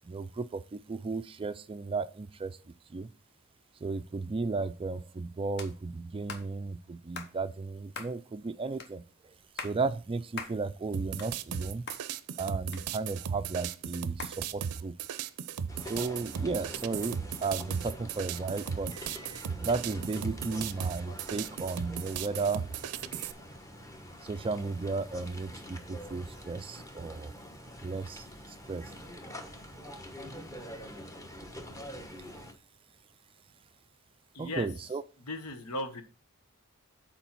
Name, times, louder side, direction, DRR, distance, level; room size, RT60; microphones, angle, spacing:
voice 1, 0.0-2.6 2.9-3.1 3.8-9.1 9.6-11.9 12.4-15.0 15.9-19.0 19.6-22.6 24.2-27.3 27.8-28.3 28.7-28.9 34.4-35.0, right 4 dB, 25° right, 0.3 m, -34 dB
sound 1, 5.6-5.7 6.3-6.5 7.1-7.3 7.9-8.1 8.8-8.9 9.4-9.8 10.4-10.6 11.0-11.6 11.9-12.0 12.7-13.3 14.2-14.4, left 4 dB, 50° left, 1.1 m, -41 dB
sound 2, 10.9-23.3, right 7 dB, 85° right, 0.5 m, -37 dB
sound 3, 15.7-32.5, equal, 15° left, 1.0 m, -46 dB
voice 2, 34.3-34.7 35.2-36.0, left 1 dB, 80° left, 1.1 m, -36 dB
6.9 x 4.4 x 5.8 m
head